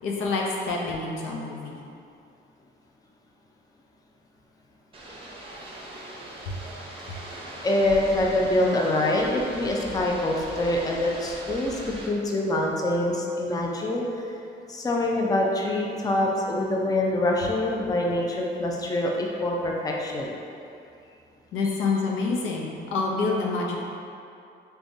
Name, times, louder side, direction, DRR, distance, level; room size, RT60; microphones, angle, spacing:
voice 1, 0.0-1.8 6.5-6.6 7.1-7.2 21.5-23.8, left 3 dB, 85° left, -1 dB, 0.5 m, -27 dB
sound 1, 4.9-12.1, right 1 dB, 30° right, 0.6 m, -40 dB
voice 2, 7.6-14.1 14.7-20.4, left 1 dB, 20° left, -2 dB, 0.4 m, -25 dB
3.3 x 3.3 x 2.6 m, 2.6 s
cardioid pair, 90°, 20 cm